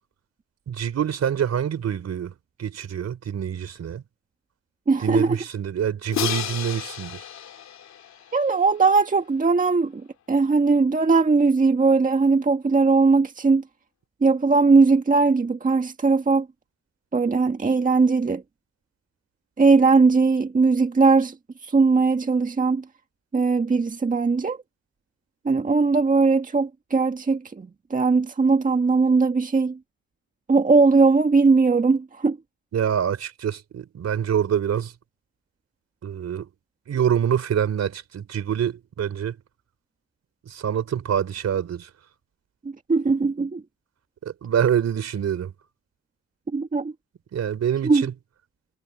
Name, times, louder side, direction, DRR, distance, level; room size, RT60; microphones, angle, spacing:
voice 1, 0.7-2.3 2.6-4.0 5.0-7.2 32.7-34.9 36.0-36.5 36.9-39.4 40.4-41.9 44.2-45.5 47.3-48.1, right 9 dB, 60° right, 4.4 m, -25 dB
voice 2, 4.9-5.4 8.3-13.6 14.2-16.5 17.1-18.4 19.6-21.3 21.6-22.8 23.3-24.6 25.4-29.8 30.5-32.4 42.9-43.6 46.5-46.9 47.8-48.1, right 4 dB, 25° right, 1.8 m, -19 dB
Crash cymbal, 6.1-9.1, left 10 dB, 65° left, 2.9 m, -32 dB
cardioid pair, 90°, 30 cm